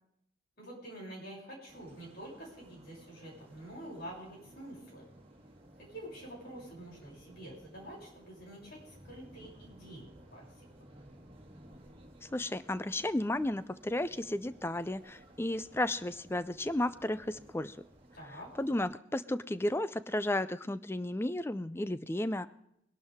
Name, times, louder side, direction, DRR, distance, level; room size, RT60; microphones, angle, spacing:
voice 1, 0.6-5.1 5.8-10.6 18.1-18.5, right 1 dB, 55° left, -4 dB, 6.9 m, -47 dB
sound 1, 1.7-18.8, right 1 dB, 30° right, 2.2 m, -57 dB
voice 2, 12.3-17.8 18.6-22.5, left 1 dB, 10° left, 15 dB, 0.4 m, -33 dB
22.0 x 11.5 x 3.6 m, 0.76 s
head